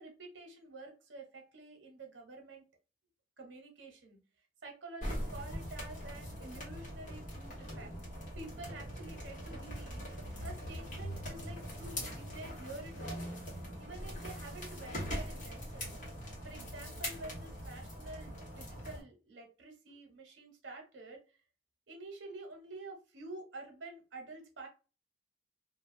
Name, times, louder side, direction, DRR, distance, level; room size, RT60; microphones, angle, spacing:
voice 1, 0.0-2.6 3.4-4.2 4.6-7.9 8.3-10.1 10.4-13.5 13.8-15.9 16.4-21.2 21.9-24.7, right 2 dB, 90° right, 3 dB, 0.8 m, -49 dB
sound 1, 5.0-19.0, equal, 45° left, 1.2 m, -42 dB
2.4 x 2.2 x 2.5 m, 0.33 s
head